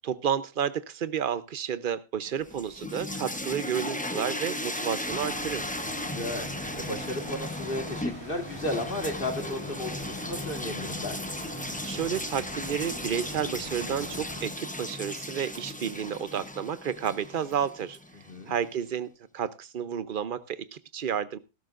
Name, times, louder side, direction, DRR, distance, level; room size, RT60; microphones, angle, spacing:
voice 1, 0.0-5.7 11.6-18.0 18.5-19.1 19.3-21.4, right 8 dB, 50° right, 14 dB, 0.9 m, -31 dB
sound 1, 2.4-18.4, left 1 dB, 10° left, 0.7 m, -36 dB
voice 2, 3.6-4.1 6.0-6.5 6.8-11.2 18.3-18.5, left 1 dB, 45° left, 4 dB, 2.0 m, -34 dB
sound 2, 5.0-14.5, equal, 20° right, 5.0 m, -44 dB
18.5 x 12.0 x 2.5 m, 0.26 s
omnidirectional pair, 1.3 m